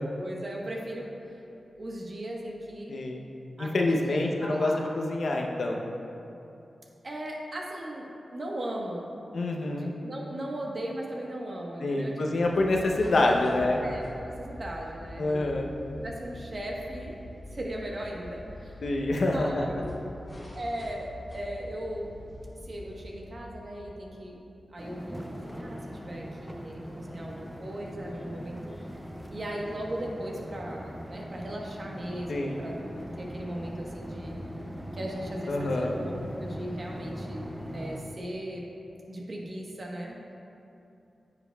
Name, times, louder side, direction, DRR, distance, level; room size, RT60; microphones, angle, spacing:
voice 1, 0.1-1.1 1.8-3.0 3.6-4.8 7.0-9.1 9.7-12.8 13.2-13.5 13.8-15.5 16.0-17.2 17.5-18.8 19.1-20.1 20.5-22.1 22.6-24.4 24.7-28.6 29.3-32.8 33.2-34.3 34.9-38.7 39.1-40.2, right 1 dB, 50° right, -2 dB, 1.1 m, -38 dB
voice 2, 2.9-3.2 3.6-5.8 9.3-9.9 11.8-13.8 15.2-15.7 18.8-19.7 32.3-32.6 35.5-35.9, left 2 dB, 70° left, 0 dB, 0.7 m, -26 dB
sound 1, 12.3-24.5, left 1 dB, 20° left, 1.0 m, -45 dB
sound 2, 24.8-38.0, equal, ahead, 0.5 m, -40 dB
9.5 x 6.8 x 2.3 m, 2.8 s
cardioid pair, 70°, 0 cm